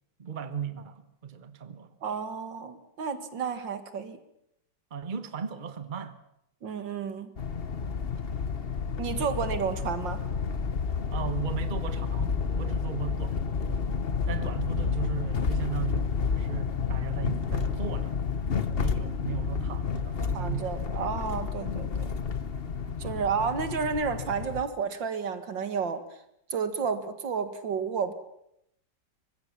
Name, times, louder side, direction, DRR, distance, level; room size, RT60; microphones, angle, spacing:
voice 1, 0.2-1.9 4.9-6.2 9.2-9.3 11.1-13.8 14.3-18.1 18.7-20.8 23.0-23.2, right 7 dB, 30° right, 1.3 m, -37 dB
voice 2, 2.0-4.2 6.6-7.3 9.0-10.2 20.3-22.1 23.0-26.0 26.5-28.1, right 6 dB, 85° right, 2.5 m, -31 dB
sound 1, 7.4-24.6, left 5 dB, 40° left, 1.1 m, -30 dB
24.0 x 20.5 x 7.4 m
omnidirectional pair, 2.0 m